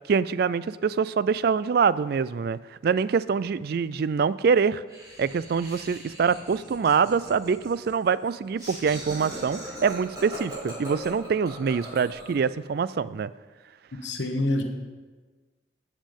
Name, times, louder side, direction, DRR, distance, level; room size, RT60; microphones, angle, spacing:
voice 1, 0.1-4.8 5.2-13.3, right 6 dB, 55° right, 17 dB, 0.3 m, -25 dB
Laughter, 4.9-12.5, right 1 dB, 20° right, 4.1 m, -41 dB
voice 2, 14.0-14.6, left 1 dB, 70° left, 3 dB, 1.0 m, -26 dB
12.5 x 7.4 x 5.3 m, 1.4 s
head